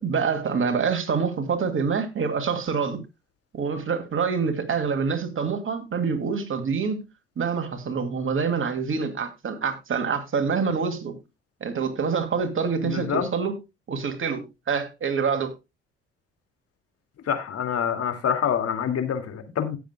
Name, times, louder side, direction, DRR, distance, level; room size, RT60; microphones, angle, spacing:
voice 1, 0.0-3.0 3.5-7.1 7.4-11.2 11.6-13.6 13.9-15.5, right 5 dB, 45° right, 2.6 m, -26 dB
voice 2, 12.8-13.3 17.3-19.8, left 8 dB, 55° left, 2.3 m, -26 dB
17.5 x 7.8 x 2.3 m
hypercardioid pair, 55°, 29 cm